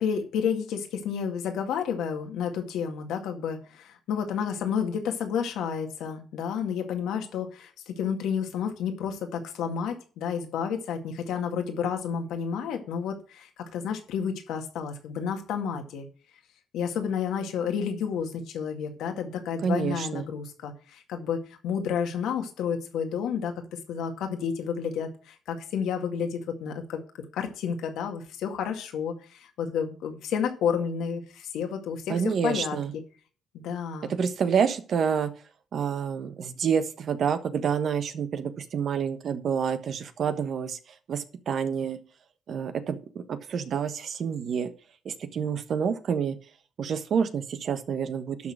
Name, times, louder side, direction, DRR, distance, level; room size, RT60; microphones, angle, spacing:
voice 1, 0.0-16.1 16.7-27.0 27.3-32.8 33.5-34.1, left 7 dB, 85° left, 4 dB, 2.0 m, -31 dB
voice 2, 19.6-20.3 32.1-32.9 34.1-35.3 35.7-40.8 41.1-42.0 42.5-44.7 45.0-46.4 46.8-48.5, right 7 dB, 60° right, 9 dB, 1.2 m, -28 dB
12.0 x 4.1 x 7.4 m, 0.39 s
cardioid pair, 90°, 0 cm